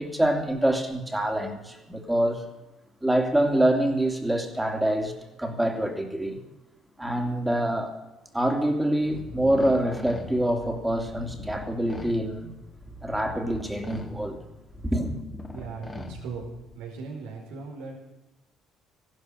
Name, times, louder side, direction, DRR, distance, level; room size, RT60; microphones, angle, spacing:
voice 1, 0.0-2.4 3.0-5.1 5.4-6.4 7.0-7.9 8.3-12.5 13.0-14.4 14.8-15.2, right 1 dB, 10° right, 4 dB, 3.1 m, -25 dB
sound 1, 9.0-16.7, left 1 dB, 20° left, 2.5 m, -41 dB
voice 2, 15.5-16.4 16.7-18.0, right 5 dB, 85° right, 1 dB, 5.0 m, -38 dB
15.0 x 12.5 x 6.8 m, 1.0 s
supercardioid pair, 75°, 0 cm